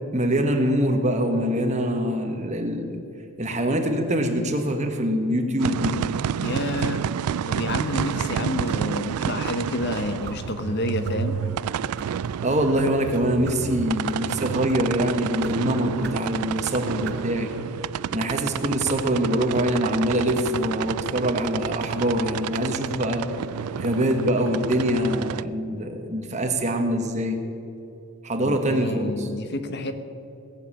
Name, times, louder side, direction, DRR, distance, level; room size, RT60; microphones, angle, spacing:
voice 1, 0.1-3.0 3.4-6.0 12.4-17.5 18.1-23.3 23.8-27.4 28.2-29.3, equal, 30° right, 4 dB, 1.3 m, -24 dB
sound 1, 5.6-25.4, right 8 dB, 80° right, 0.3 m, -30 dB
voice 2, 6.4-7.1 7.5-11.4 28.4-29.9, left 1 dB, 50° left, 9 dB, 0.9 m, -29 dB
sound 2, 6.8-7.0 7.7-8.0 8.7-8.8 9.4-9.6 10.2-10.4 11.0-11.2 11.8-12.1 12.8-12.9 13.4-13.6 14.1-14.3 14.7-14.9 15.4-15.6 16.0-16.3 17.0-17.2, right 6 dB, 50° right, 0.7 m, -41 dB
18.0 x 7.4 x 8.4 m, 2.7 s
head